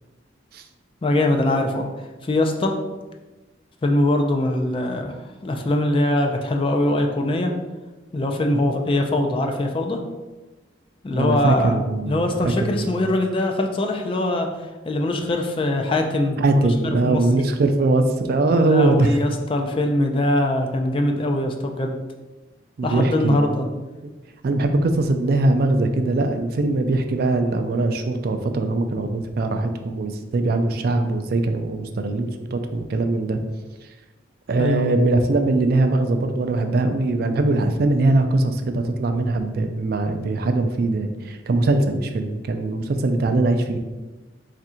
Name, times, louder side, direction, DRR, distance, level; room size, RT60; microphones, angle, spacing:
voice 1, 1.0-1.9 2.2-2.7 3.8-5.2 5.4-7.5 8.1-10.0 11.0-11.8 12.1-14.5 14.9-17.2 18.6-22.0 22.8-23.7 34.6-34.9, left 1 dB, 30° left, 3 dB, 0.4 m, -22 dB
voice 2, 11.1-12.9 16.4-19.2 22.8-23.5 24.0-24.1 24.4-33.4 34.5-43.8, right 2 dB, 55° right, 6 dB, 0.3 m, -21 dB
3.5 x 2.5 x 4.2 m, 1.2 s
head